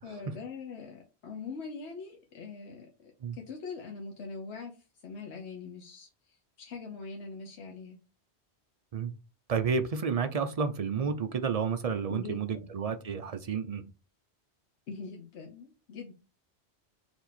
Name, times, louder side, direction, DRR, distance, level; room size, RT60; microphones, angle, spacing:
voice 1, 0.0-4.7 5.0-8.0 12.1-12.7 14.9-16.1, left 4 dB, 75° left, 1.1 m, -43 dB
voice 2, 9.5-13.8, right 5 dB, 45° right, 0.5 m, -31 dB
4.5 x 2.9 x 4.1 m
omnidirectional pair, 1.2 m